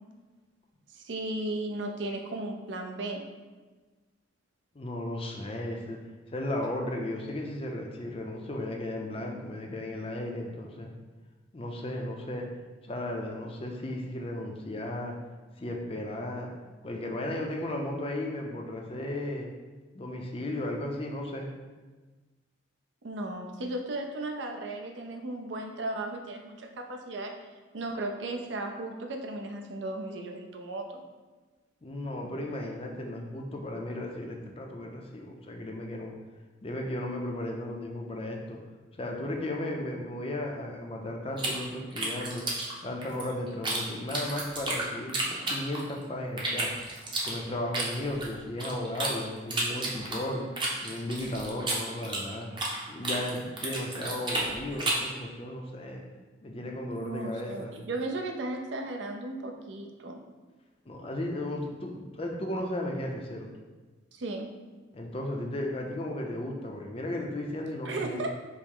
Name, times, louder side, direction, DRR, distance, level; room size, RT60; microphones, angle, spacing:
voice 1, 0.9-3.3 23.0-27.3 27.7-31.0 56.9-60.2 64.1-64.5 67.9-68.3, right 2 dB, 70° right, 3 dB, 0.5 m, -35 dB
voice 2, 4.7-6.0 6.3-10.9 11.5-12.5 12.8-15.1 15.6-16.5 16.8-19.5 19.9-21.5 31.8-36.1 36.6-38.6 38.9-42.4 42.8-46.7 47.2-50.5 50.8-52.5 52.9-56.0 56.4-57.8 60.8-63.5 64.9-68.2, left 1 dB, 30° left, 1 dB, 0.5 m, -35 dB
sound 1, 41.4-43.8 44.1-46.0 46.4-49.1 49.5-52.8 53.0-55.1, right 2 dB, 25° right, 0.7 m, -32 dB
5.4 x 2.1 x 4.7 m, 1.3 s
head